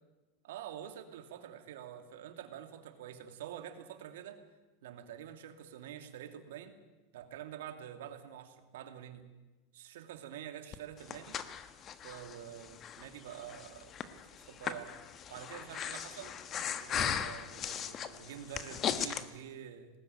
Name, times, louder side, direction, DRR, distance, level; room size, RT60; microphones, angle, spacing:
voice 1, 0.4-4.4 4.8-6.7 7.1-9.2 9.7-11.4 12.0-15.0 15.3-16.3 16.8-19.9, right 10 dB, 80° right, 8 dB, 2.5 m, -47 dB
Breathing, 10.7-19.2, left 8 dB, 35° left, 1.4 m, -38 dB
20.5 x 18.5 x 9.1 m, 1.1 s
supercardioid pair, 115°, 0 cm